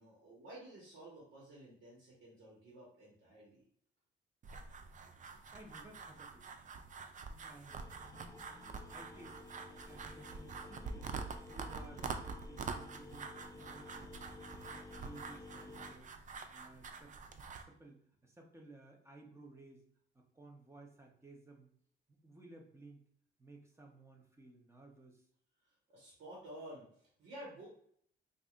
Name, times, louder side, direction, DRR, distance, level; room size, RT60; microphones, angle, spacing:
voice 1, 0.0-3.6 25.9-27.7, right 1 dB, 75° right, -5 dB, 1.4 m, -52 dB
sound 1, 4.4-17.6, right 5 dB, 40° right, 0.5 m, -46 dB
voice 2, 5.5-6.5 7.2-7.9 8.9-9.4 9.7-11.1 11.5-14.2 14.6-19.8 20.1-21.7 22.1-23.0 23.4-25.2, right 2 dB, 15° right, 1 dB, 0.9 m, -57 dB
sound 2, 7.7-15.9, left 3 dB, 15° left, 0.4 m, -54 dB
4.7 x 2.6 x 2.5 m, 0.62 s
cardioid pair, 90°, 20 cm